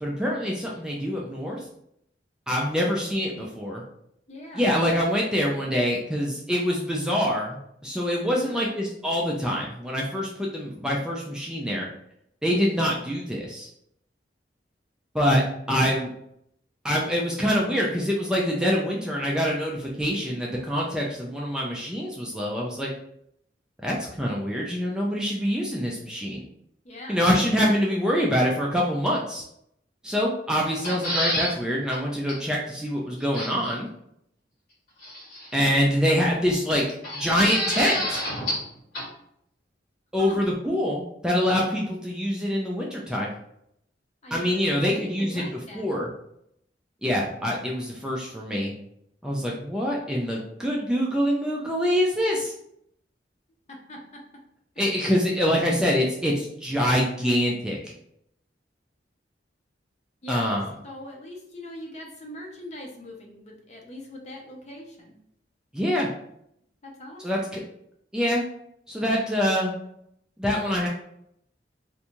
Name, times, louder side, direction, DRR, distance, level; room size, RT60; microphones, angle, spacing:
voice 1, 0.0-1.7 2.5-3.8 4.5-7.6 7.8-11.9 12.4-13.7 15.1-15.4 15.7-16.1 16.8-22.9 23.8-26.4 27.1-29.4 30.0-33.9 35.5-36.8 37.1-38.2 40.1-43.3 44.3-45.5 45.7-46.1 47.0-48.7 49.2-52.5 54.8-57.9 60.3-60.6 65.7-66.1 67.2-67.6 68.1-68.4 68.9-69.7 70.4-70.9, equal, 5° right, -3 dB, 0.3 m, -25 dB
voice 2, 4.3-4.7 8.5-8.8 26.8-27.3 40.2-40.4 44.2-45.8 53.7-54.2 60.2-60.5 60.8-65.2 66.8-67.5, left 1 dB, 40° left, 0 dB, 0.6 m, -41 dB
sound 1, 30.7-31.5 31.9-32.0 32.3-32.4 33.3-33.7 35.0-35.6 37.0-38.7 38.9-39.0, equal, 60° left, 1.2 m, -29 dB
2.5 x 2.3 x 2.9 m, 0.74 s
head